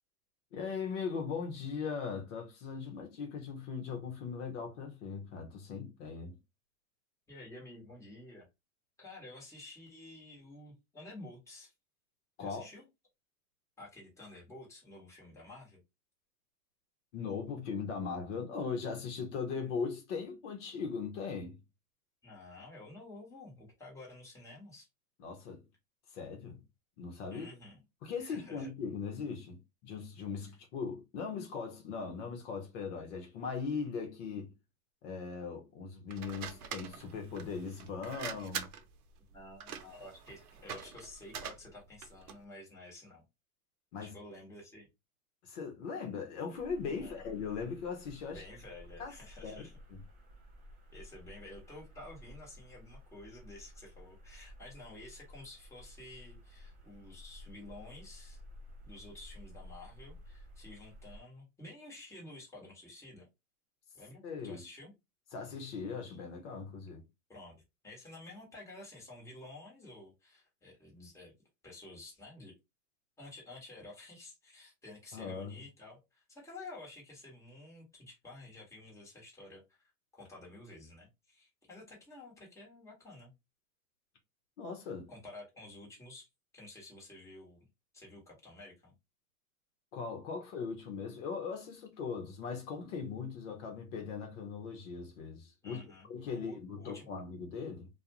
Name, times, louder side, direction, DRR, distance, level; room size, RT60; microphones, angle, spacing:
voice 1, 0.5-6.4 12.4-12.7 17.1-21.6 25.2-25.6 26.1-26.6 27.0-27.5 28.0-34.5 35.0-38.7 43.9-44.2 45.4-48.4 49.0-49.1 49.4-50.0 64.2-64.6 65.3-67.0 75.1-75.6 84.6-85.1 89.9-95.8 96.1-97.9, left 5 dB, 55° left, 0.9 m, -39 dB
voice 2, 7.3-8.4 9.0-11.7 12.4-12.8 13.8-15.8 22.2-24.9 27.3-27.8 28.2-28.7 39.3-43.2 44.0-44.9 47.0-47.3 48.3-49.7 50.9-58.4 58.8-63.3 63.9-64.9 67.3-67.6 67.8-71.3 71.6-72.5 73.2-79.8 80.1-83.3 85.1-86.3 86.5-87.6 87.9-88.9 95.6-97.1, left 2 dB, 5° left, 1.2 m, -51 dB
sound 1, 36.1-42.4, right 7 dB, 80° right, 0.7 m, -44 dB
sound 2, 46.6-61.2, left 1 dB, 20° right, 0.7 m, -53 dB
2.4 x 2.3 x 2.9 m
hypercardioid pair, 130°, 44 cm